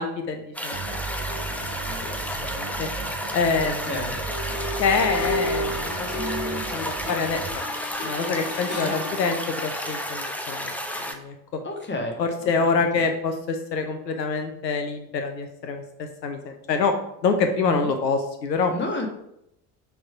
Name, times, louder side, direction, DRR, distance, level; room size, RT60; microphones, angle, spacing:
voice 1, 0.0-1.5 1.9-2.1 2.5-2.9 3.3-4.0 4.8-6.1 6.4-7.6 8.0-11.6 12.2-16.9 17.2-18.7, left 4 dB, 75° left, 6 dB, 0.7 m, -26 dB
sound 1, 0.5-11.1, equal, 5° left, 0.5 m, -32 dB
sound 2, 0.7-7.6, right 5 dB, 35° right, 0.8 m, -36 dB
voice 2, 3.9-4.2 8.8-8.9 11.6-12.2 12.7-13.0 17.6-17.9 18.7-19.1, left 1 dB, 20° left, 3 dB, 1.5 m, -31 dB
sound 3, 4.3-9.3, left 1 dB, 55° left, 2.4 m, -32 dB
6.1 x 3.5 x 5.7 m, 0.80 s
figure-of-eight pair, 65°, 50 cm